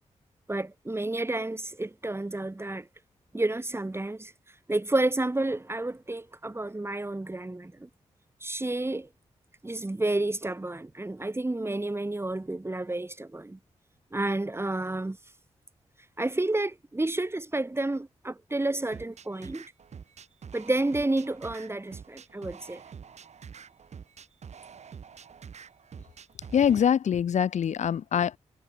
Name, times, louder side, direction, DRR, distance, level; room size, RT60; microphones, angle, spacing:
voice 1, 0.5-2.9 3.3-4.3 4.7-7.9 8.4-9.1 9.6-13.6 14.1-15.2 16.2-19.6 20.5-22.8, right 2 dB, 20° right, 4.2 m, -30 dB
sound 1, 18.9-26.9, right 7 dB, 70° right, 4.4 m, -47 dB
voice 2, 26.5-28.4, left 8 dB, 80° left, 1.6 m, -24 dB
cardioid pair, 65°, 12 cm